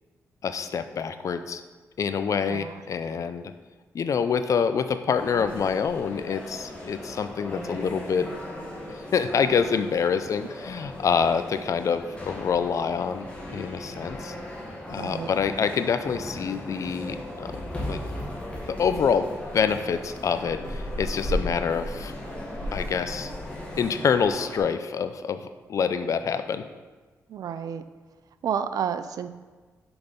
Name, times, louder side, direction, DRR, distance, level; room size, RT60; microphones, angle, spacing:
voice 1, 0.4-1.6 2.0-3.5 3.9-8.3 9.1-14.3 14.9-17.5 17.9-18.0 18.7-19.3 19.5-22.1 22.7-23.3 23.8-26.6, left 6 dB, 60° left, 10 dB, 0.5 m, -26 dB
voice 2, 2.5-2.8 15.0-15.3 27.3-27.8 28.4-29.3, right 8 dB, 75° right, 11 dB, 0.4 m, -30 dB
sound 1, 5.1-24.6, left 1 dB, 20° left, 1.9 m, -36 dB
6.1 x 5.5 x 5.2 m, 1.3 s
cardioid pair, 90°, 6 cm